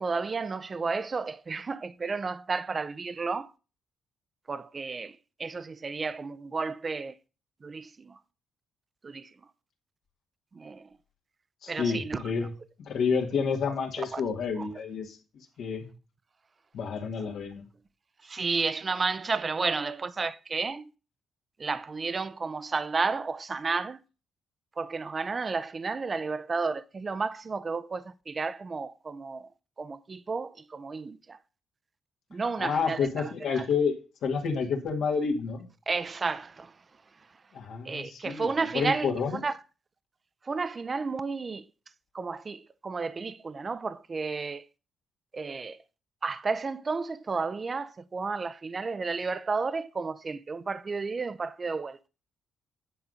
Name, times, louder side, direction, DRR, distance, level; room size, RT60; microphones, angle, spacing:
voice 1, 0.0-3.5 4.5-5.1 5.4-7.1 7.6-7.8 9.1-9.2 10.6-10.8 11.7-12.2 18.3-20.8 21.6-24.0 24.8-29.4 29.8-31.2 32.3-33.0 35.9-36.7 37.9-39.1 39.4-39.5 40.5-41.6 42.1-44.6 45.3-45.8 46.2-52.0, right 4 dB, 35° right, 0.6 m, -32 dB
voice 2, 11.6-12.5 12.9-15.2 15.6-15.9 16.7-17.6 32.6-35.7 37.5-39.4, left 5 dB, 75° left, 1.9 m, -29 dB
9.9 x 4.0 x 6.3 m
cardioid pair, 90°, 0 cm